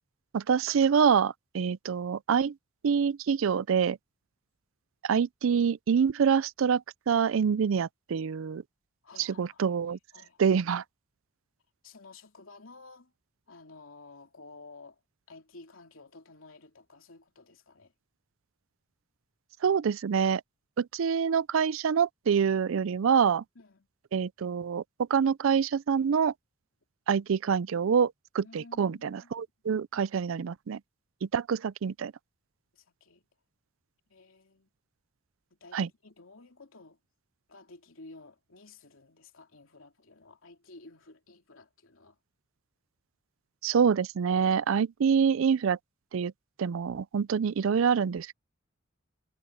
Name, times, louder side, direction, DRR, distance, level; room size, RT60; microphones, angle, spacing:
voice 1, 0.3-2.5 2.8-4.0 5.0-8.6 9.2-10.0 10.4-10.8 19.6-20.4 20.8-23.4 24.1-24.8 25.1-26.3 27.1-30.8 31.3-32.1 35.7-35.9 43.6-45.8 46.1-46.3 46.6-48.3, right 7 dB, 75° right, 0.4 m, -26 dB
voice 2, 9.0-9.8 10.1-10.6 11.8-13.1 13.5-15.0 15.3-17.9 23.5-23.9 28.4-29.4 32.7-33.2 34.1-34.7 35.5-37.0 37.5-42.2, left 3 dB, 80° left, 2.9 m, -53 dB
head